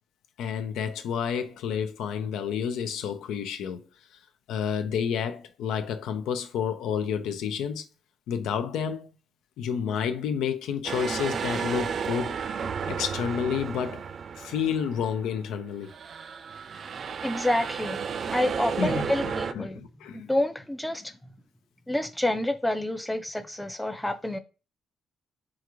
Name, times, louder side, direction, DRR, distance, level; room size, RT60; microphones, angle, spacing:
voice 1, 0.4-3.8 4.5-7.8 8.3-9.1 9.6-12.4 12.9-14.0 14.3-15.9 18.8-19.1 19.5-20.3, left 7 dB, 85° left, 0.5 m, -30 dB
sound 1, 10.8-15.4 15.8-19.5, right 6 dB, 50° right, 0.3 m, -33 dB
voice 2, 17.2-18.0 18.3-19.8 20.1-21.1 21.9-24.4, left 1 dB, 5° left, 0.5 m, -28 dB
4.7 x 2.5 x 3.0 m
cardioid pair, 90°, 0 cm